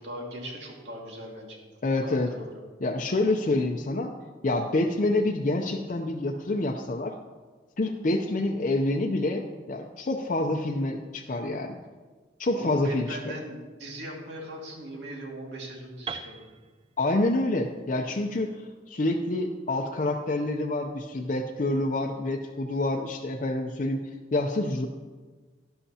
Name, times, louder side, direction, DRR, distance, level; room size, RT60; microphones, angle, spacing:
voice 1, 0.0-1.6 2.0-2.5 12.5-16.5, right 1 dB, 85° right, -1 dB, 2.1 m, -39 dB
voice 2, 1.8-2.3 2.8-4.1 4.4-7.1 7.8-11.8 12.4-13.3 17.0-24.0 24.3-24.9, left 2 dB, 45° left, 2 dB, 0.6 m, -27 dB
Piano, 16.1-20.0, right 5 dB, 30° right, 0.4 m, -43 dB
11.5 x 11.5 x 2.8 m, 1.4 s
head